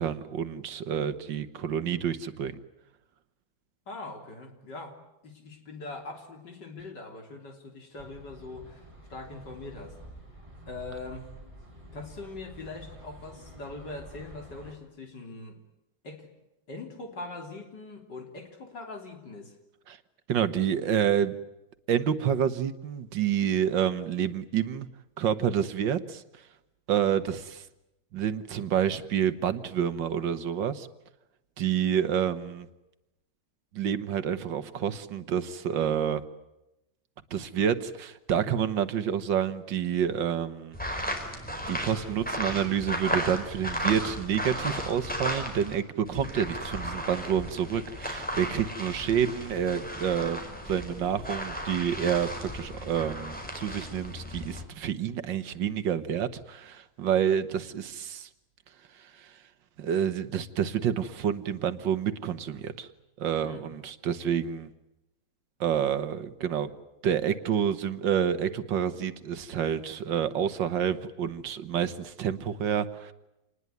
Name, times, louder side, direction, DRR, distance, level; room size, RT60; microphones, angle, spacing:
voice 1, 0.0-2.6 19.9-20.0 20.3-21.4 21.9-24.9 25.2-26.2 26.9-27.7 28.1-30.9 31.6-32.7 33.7-36.2 37.3-40.8 41.7-50.4 50.7-58.3 59.0-59.3 59.8-62.9 63.2-64.7 65.6-66.7 67.0-73.1, right 8 dB, 85° right, 12 dB, 1.9 m, -28 dB
voice 2, 3.9-5.0 5.2-8.8 9.1-10.0 10.7-11.2 11.9-15.6 16.0-16.3 16.7-19.5 63.4-63.7, left 3 dB, 70° left, 4 dB, 4.0 m, -42 dB
sound 1, 8.0-14.7, equal, 15° right, 4.0 m, -49 dB
sound 2, 40.7-45.8 46.1-54.6, equal, 5° left, 4.6 m, -35 dB
27.5 x 20.0 x 9.5 m, 0.93 s
omnidirectional pair, 2.0 m